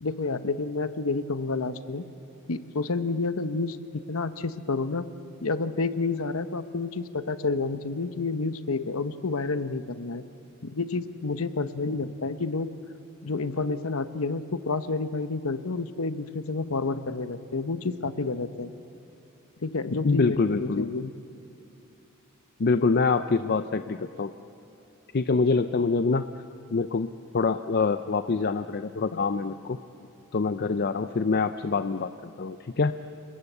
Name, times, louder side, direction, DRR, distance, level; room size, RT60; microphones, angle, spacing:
voice 1, 0.0-2.0 2.5-5.0 5.4-10.2 10.6-12.7 13.2-18.7 19.6-21.1 29.1-29.2, left 3 dB, 70° left, 11 dB, 0.9 m, -29 dB
voice 2, 20.0-20.9 22.6-24.3 25.1-26.3 26.7-27.1 27.3-29.8 30.3-32.9, left 4 dB, 45° left, 10 dB, 0.5 m, -25 dB
29.5 x 20.5 x 8.1 m, 2.8 s
head